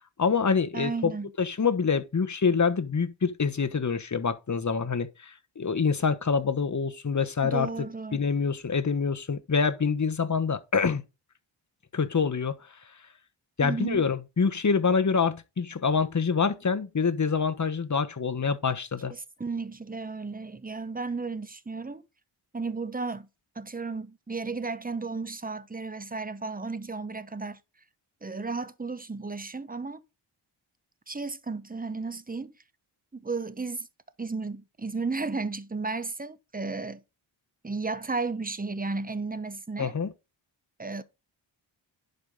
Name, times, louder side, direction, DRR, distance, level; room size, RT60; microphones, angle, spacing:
voice 1, 0.2-1.1 1.4-7.7 8.1-11.0 11.9-12.6 13.6-19.1 39.8-40.1, left 5 dB, 35° left, 1.1 m, -26 dB
voice 2, 0.7-1.3 7.4-8.2 13.6-14.0 19.4-22.0 22.5-23.3 23.6-27.6 28.2-30.0 31.1-32.5 33.1-33.9 34.2-37.0 37.6-39.9 40.8-41.0, right 4 dB, 15° right, 0.9 m, -33 dB
11.0 x 4.9 x 4.0 m
wide cardioid pair, 75°, 50 cm